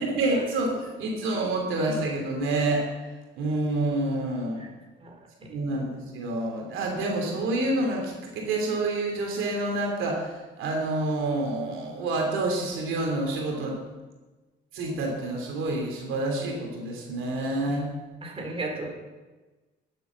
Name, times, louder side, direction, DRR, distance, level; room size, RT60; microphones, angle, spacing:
voice 1, 0.2-2.8 3.4-4.6 5.5-13.8 14.7-17.9, right 2 dB, 90° right, 0 dB, 2.9 m, -28 dB
voice 2, 18.2-18.9, right 2 dB, 30° right, 0 dB, 3.6 m, -34 dB
11.5 x 8.0 x 7.4 m, 1.2 s
cardioid pair, 90°, 20 cm